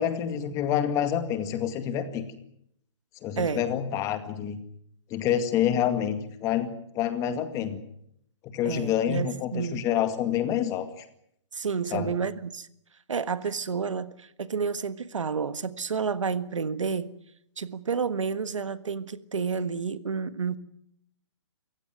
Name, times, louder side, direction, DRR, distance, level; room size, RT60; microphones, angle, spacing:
voice 1, 0.0-2.2 3.2-4.6 5.1-6.7 6.9-7.8 8.4-11.1 11.9-12.1, left 9 dB, 20° left, 2.1 m, -27 dB
voice 2, 8.6-9.8 11.5-12.7 13.1-17.1 17.6-20.6, right 5 dB, 90° right, 1.5 m, -30 dB
27.0 x 16.0 x 9.4 m
hypercardioid pair, 155°, 16 cm